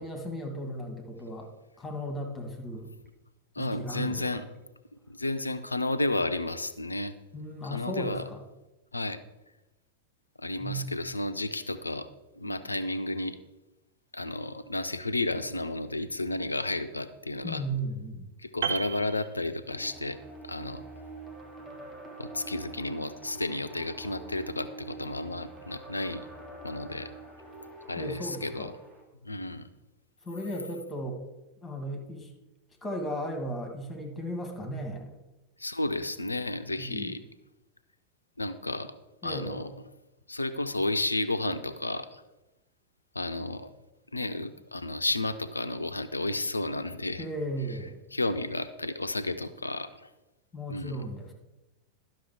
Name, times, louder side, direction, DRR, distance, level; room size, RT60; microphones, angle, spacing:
voice 1, 0.0-1.5 1.8-2.9 3.6-4.4 7.3-8.4 10.6-11.0 17.4-18.3 28.0-28.7 30.2-31.2 31.6-32.3 32.8-35.1 36.8-37.1 39.2-39.6 47.2-48.0 50.5-51.3, equal, 15° left, 4 dB, 1.8 m, -36 dB
voice 2, 3.6-4.5 5.1-7.1 7.6-8.2 8.9-9.2 10.4-12.1 12.4-13.4 14.1-17.6 18.4-20.2 20.4-20.8 22.2-26.3 26.6-27.1 27.9-28.7 29.2-29.7 35.6-37.2 38.4-38.9 39.2-39.7 40.3-42.2 43.1-43.7 44.1-47.3 48.1-49.9 50.7-51.0, left 2 dB, 80° left, 10 dB, 0.5 m, -32 dB
Piano, 18.6-20.1 20.3-20.6, right 8 dB, 60° right, 0.6 m, -34 dB
sound 1, 19.7-29.0, right 2 dB, 15° right, 1.8 m, -45 dB
11.5 x 6.0 x 4.7 m, 0.99 s
figure-of-eight pair, 90°, 0 cm